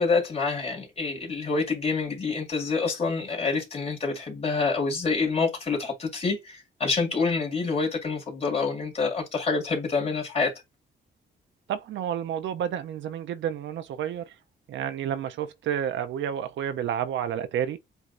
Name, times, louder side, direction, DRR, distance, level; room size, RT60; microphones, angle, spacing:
voice 1, 0.0-10.5, left 4 dB, 35° left, 2.3 m, -27 dB
voice 2, 11.7-14.2 14.7-17.8, right 9 dB, 85° right, 0.6 m, -30 dB
7.9 x 2.7 x 2.5 m
cardioid pair, 120°, 19 cm